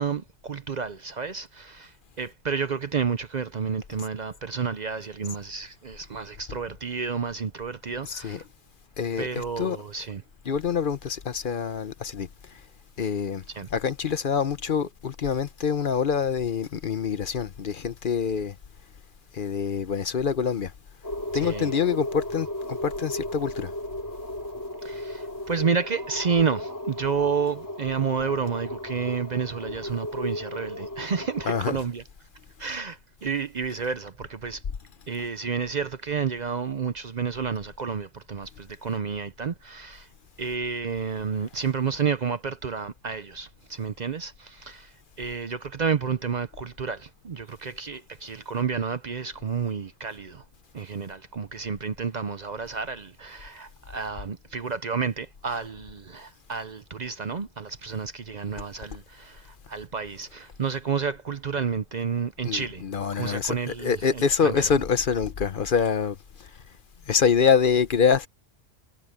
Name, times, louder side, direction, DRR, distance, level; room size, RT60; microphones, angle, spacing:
voice 1, 0.0-8.4 9.2-10.2 13.5-13.7 21.3-21.7 24.8-32.0 32.6-34.6 35.1-40.1 40.4-50.4 50.7-62.8 63.1-64.7, right 6 dB, 45° right, 0.7 m, -30 dB
voice 2, 8.0-8.4 9.0-9.8 10.4-12.6 13.0-13.4 13.7-18.5 19.3-20.7 21.3-23.7 29.7-29.8 31.4-31.8 62.4-66.5 67.1-68.3, left 6 dB, 50° left, 0.9 m, -26 dB
sound 1, 21.0-31.6, left 1 dB, 15° left, 3.8 m, -35 dB
omnidirectional pair, 1.1 m